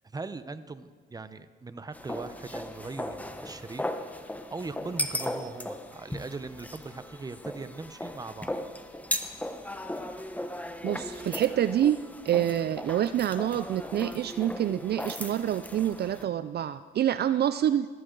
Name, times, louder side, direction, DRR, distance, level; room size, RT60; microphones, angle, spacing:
voice 1, 0.1-3.8 4.5-8.5, right 3 dB, 20° right, 12 dB, 0.8 m, -40 dB
sound 1, 1.9-16.2, left 1 dB, 5° left, 1.1 m, -37 dB
voice 2, 10.8-12.0 12.2-17.9, right 11 dB, 55° right, 13 dB, 0.4 m, -27 dB
20.0 x 15.0 x 3.9 m, 1.5 s
cardioid pair, 90°, 20 cm